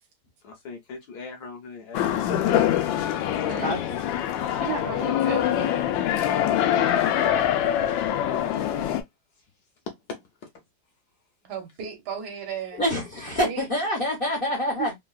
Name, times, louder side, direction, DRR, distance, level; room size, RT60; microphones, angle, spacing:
voice 1, 0.4-2.2 3.6-4.3 9.9-10.2, left 4 dB, 65° left, 1.2 m, -40 dB
sound 1, 1.9-9.0, left 11 dB, 85° left, 1.3 m, -24 dB
voice 2, 4.5-5.8 11.4-12.8 13.4-13.7 14.8-15.0, right 7 dB, 65° right, 1.5 m, -34 dB
voice 3, 12.8-14.9, left 1 dB, 40° left, 0.8 m, -26 dB
3.6 x 2.3 x 2.3 m
omnidirectional pair, 2.0 m